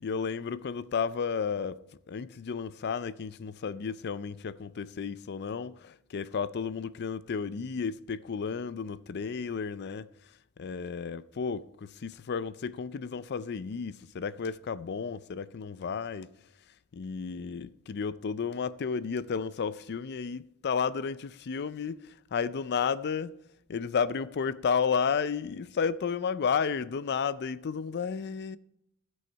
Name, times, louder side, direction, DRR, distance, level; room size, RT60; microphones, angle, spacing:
voice 1, 0.0-1.8 2.1-16.3 16.9-23.3 23.7-28.6, left 6 dB, 50° left, 0.4 m, -32 dB
14.5 x 6.4 x 4.5 m
head